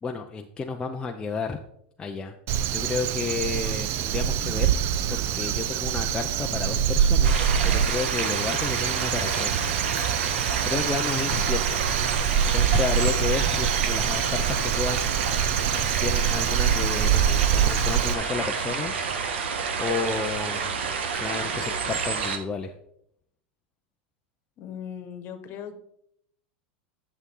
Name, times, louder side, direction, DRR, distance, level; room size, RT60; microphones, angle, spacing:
voice 1, 0.0-1.6 2.0-2.3 2.7-4.8 5.1-9.7 10.6-11.7 12.5-15.3 16.0-18.9 19.3-19.5 19.8-22.7, left 4 dB, 15° left, 2 dB, 0.6 m, -32 dB
Crow, 2.5-18.1, right 9 dB, 45° right, 0.6 m, -25 dB
sound 1, 7.2-22.4, right 5 dB, 90° right, 1.4 m, -29 dB
voice 2, 24.6-25.7, left 8 dB, 40° left, 9 dB, 1.4 m, -38 dB
10.5 x 6.9 x 3.8 m, 0.72 s
supercardioid pair, 140°, 6 cm